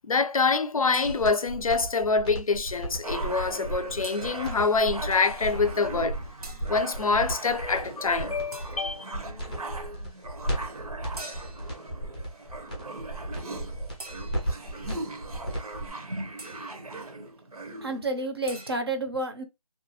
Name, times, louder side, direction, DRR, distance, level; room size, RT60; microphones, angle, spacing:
voice 1, 0.1-6.2 6.7-9.2, left 4 dB, 65° left, 0.5 m, -25 dB
sound 1, 0.9-1.6 4.0-4.7 6.4-6.8 8.5-9.1 11.2-11.8 14.0-14.7 16.4-16.9 18.5-18.8, right 2 dB, 90° right, 1.2 m, -45 dB
sound 2, 1.0-15.9, right 1 dB, 10° left, 0.6 m, -35 dB
sound 3, 3.0-18.0, right 2 dB, 75° right, 0.9 m, -40 dB
voice 2, 16.0-16.3 16.8-17.3 17.8-19.4, right 2 dB, 40° right, 0.7 m, -31 dB
2.7 x 2.3 x 2.7 m
figure-of-eight pair, 170°, 19 cm